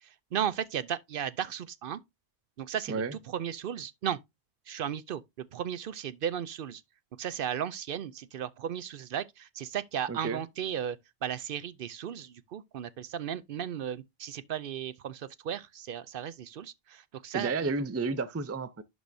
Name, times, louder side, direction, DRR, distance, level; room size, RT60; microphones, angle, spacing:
voice 1, 0.0-2.0 2.6-4.2 4.7-6.8 7.2-11.0 11.2-17.7, right 9 dB, 65° right, 0.7 m, -35 dB
voice 2, 10.1-10.4 17.3-18.8, right 4 dB, 20° right, 0.4 m, -31 dB
11.5 x 4.7 x 2.6 m
omnidirectional pair, 1.0 m